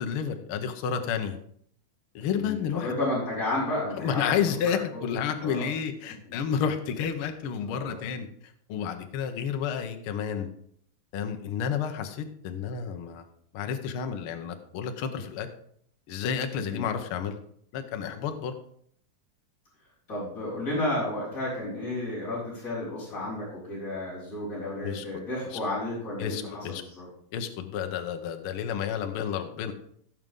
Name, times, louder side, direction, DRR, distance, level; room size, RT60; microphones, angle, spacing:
voice 1, 0.0-1.4 2.1-2.9 4.0-8.3 8.7-10.5 11.1-13.2 13.5-15.5 16.1-17.3 17.7-18.6 24.8-25.0 26.2-26.8 27.3-29.7, left 7 dB, 65° left, 6 dB, 1.3 m, -30 dB
voice 2, 2.3-4.3 4.7-5.0 5.4-5.7 7.6-8.0 16.5-16.9 20.1-27.1, left 1 dB, 25° left, -8 dB, 5.4 m, -32 dB
16.0 x 6.4 x 3.7 m, 0.64 s
omnidirectional pair, 3.6 m